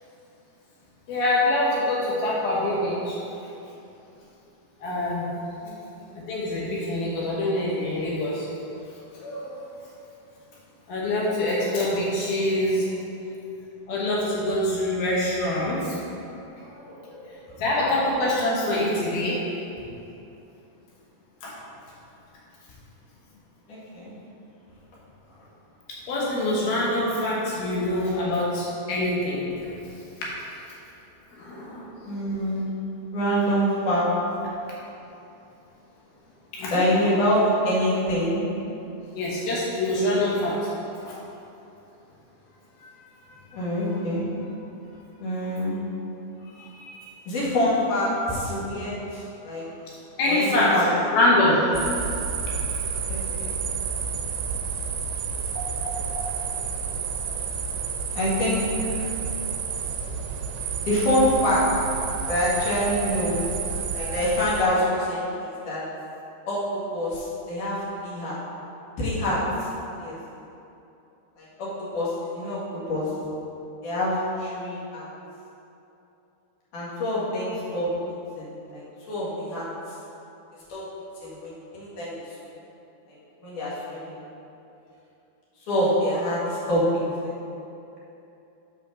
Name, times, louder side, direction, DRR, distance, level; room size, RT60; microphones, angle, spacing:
voice 1, 1.1-3.2 4.8-5.3 6.3-8.5 9.1-9.5 10.9-12.9 13.9-15.9 16.8-19.4 21.4-21.6 26.1-29.4 31.3-31.9 36.5-36.9 39.1-40.6 41.0-41.1 46.6-47.0 50.2-50.7 51.1-51.7 55.6-55.7 56.2-56.3, left 1 dB, 70° left, -5 dB, 2.8 m, -25 dB
voice 2, 17.6-18.1 23.7-24.1 32.0-32.7 33.1-34.0 36.7-38.4 43.5-44.3 45.2-45.8 47.3-49.7 50.2-50.9 53.1-53.5 58.1-59.1 60.8-61.7 62.3-63.4 63.7-65.8 66.5-68.4 69.0-69.4 70.0-70.2 71.4-73.1 73.8-75.1 76.7-77.9 78.4-79.7 80.7-80.9 81.2-82.1 83.4-84.2 85.7-87.4, equal, 55° left, -8 dB, 3.2 m, -26 dB
sound 1, 51.7-64.6, right 6 dB, 90° right, 2.9 m, -30 dB
8.3 x 5.0 x 6.2 m, 2.9 s
omnidirectional pair, 4.9 m